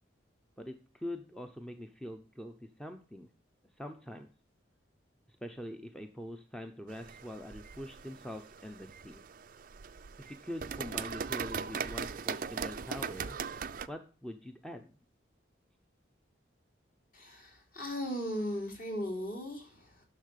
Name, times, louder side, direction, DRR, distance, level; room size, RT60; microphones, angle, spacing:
voice 1, 0.6-3.3 3.8-4.3 5.4-9.2 10.2-13.4 13.9-14.9, left 1 dB, 5° left, 6 dB, 0.6 m, -44 dB
sound 1, 6.9-13.9, right 6 dB, 45° right, 0.4 m, -39 dB
voice 2, 17.1-20.0, equal, 45° left, 1 dB, 3.1 m, -37 dB
10.5 x 6.5 x 6.5 m, 0.37 s
head